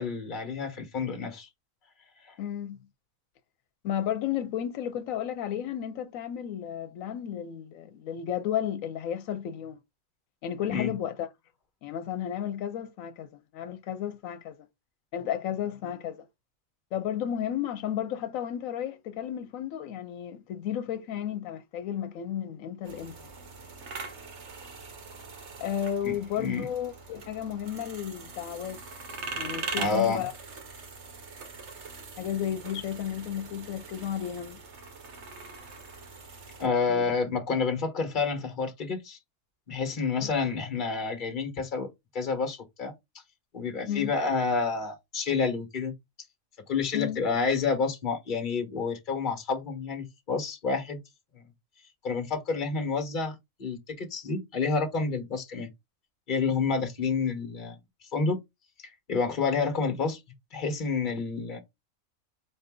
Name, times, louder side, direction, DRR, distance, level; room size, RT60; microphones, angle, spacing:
voice 1, 0.0-1.5 2.3-2.4 10.7-10.9 26.0-26.1 26.4-26.7 29.7-30.2 36.6-39.2 39.7-41.9 42.1-42.9 43.5-45.9 46.7-51.0 51.3-51.4 52.0-55.7 56.3-57.8 58.1-58.4 59.1-60.2 60.5-61.6, left 4 dB, 40° left, 1.3 m, -29 dB
voice 2, 2.4-2.8 3.8-9.8 10.4-11.3 11.8-14.6 15.1-16.3 16.9-23.3 25.6-28.8 29.4-30.3 32.2-34.6 36.6-37.1 40.2-40.3 43.9-44.1 46.9-47.2, left 10 dB, 85° left, 1.0 m, -33 dB
sound 1, 22.8-36.7, right 4 dB, 60° right, 1.3 m, -42 dB
4.3 x 2.6 x 3.6 m
omnidirectional pair, 1.4 m